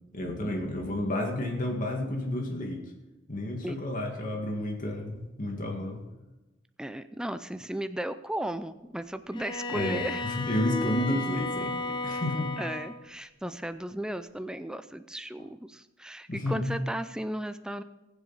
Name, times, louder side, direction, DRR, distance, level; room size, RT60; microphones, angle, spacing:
voice 1, 0.1-2.8 3.3-6.1 9.7-12.6 16.3-16.7, left 1 dB, 40° left, 1 dB, 2.0 m, -31 dB
voice 2, 6.8-10.3 12.6-17.8, right 1 dB, 5° right, 10 dB, 0.4 m, -35 dB
Bowed string instrument, 9.3-13.1, left 3 dB, 25° left, 0.8 m, -34 dB
20.5 x 7.6 x 4.0 m, 1.1 s
head